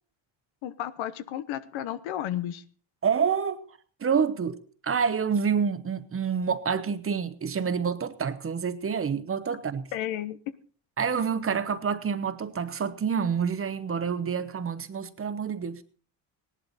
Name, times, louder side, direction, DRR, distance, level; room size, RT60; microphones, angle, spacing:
voice 1, 0.6-2.6 9.9-10.4, left 12 dB, 85° left, 1.1 m, -32 dB
voice 2, 3.0-3.7 4.0-9.9 11.0-15.8, right 6 dB, 30° right, 1.0 m, -28 dB
17.5 x 11.0 x 4.1 m
cardioid pair, 125°, 46 cm